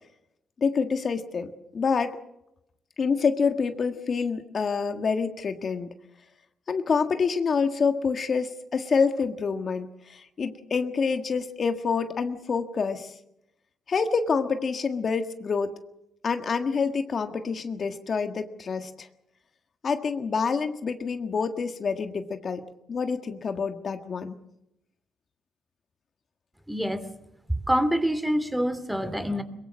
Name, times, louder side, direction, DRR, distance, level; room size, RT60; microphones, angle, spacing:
voice 1, 0.6-2.2 3.0-5.9 6.7-13.1 13.9-15.7 16.2-19.1 19.8-22.6 22.9-24.4, left 5 dB, 45° left, 7 dB, 1.6 m, -27 dB
voice 2, 26.7-27.1 27.5-29.4, equal, 5° right, 11 dB, 2.5 m, -26 dB
22.5 x 22.0 x 6.3 m, 0.82 s
cardioid pair, 90°, 0 cm